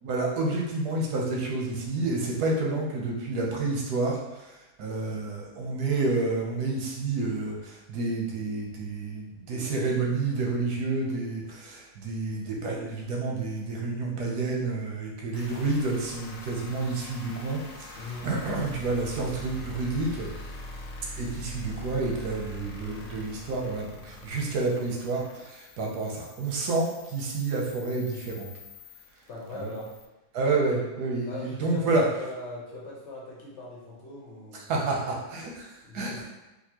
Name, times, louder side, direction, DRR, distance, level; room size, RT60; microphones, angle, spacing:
voice 1, 0.0-4.5 4.8-20.3 21.1-28.5 29.6-29.7 30.3-32.0 34.7-35.7 35.9-36.3, right 3 dB, 85° right, -1 dB, 1.3 m, -29 dB
voice 2, 1.9-2.2 17.9-18.3 29.3-29.9 31.3-34.6 35.8-36.3, left 2 dB, 55° left, -5 dB, 0.9 m, -41 dB
sound 1, 15.3-30.1, left 2 dB, 85° left, 1.2 m, -43 dB
4.2 x 2.4 x 2.8 m, 1.0 s
omnidirectional pair, 1.7 m